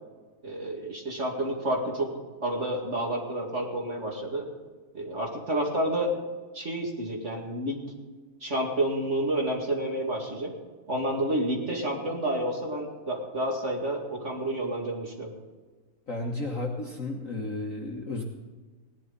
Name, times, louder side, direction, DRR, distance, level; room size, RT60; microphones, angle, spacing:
voice 1, 0.4-2.1 2.4-4.5 4.9-6.2 6.5-7.8 8.4-10.5 10.9-15.3, right 1 dB, 35° right, -1 dB, 2.4 m, -29 dB
voice 2, 16.1-18.2, left 2 dB, 45° left, 0 dB, 1.4 m, -33 dB
18.0 x 11.5 x 4.0 m, 1.4 s
omnidirectional pair, 2.4 m